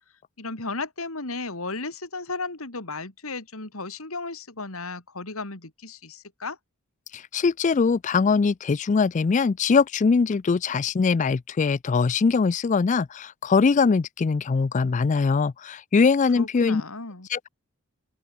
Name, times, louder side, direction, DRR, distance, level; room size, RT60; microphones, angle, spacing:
voice 1, 0.4-6.6 16.4-17.3, left 3 dB, 70° left, 3.3 m, -34 dB
voice 2, 7.1-16.8 17.3-17.5, left 5 dB, 35° left, 0.3 m, -22 dB
open air
head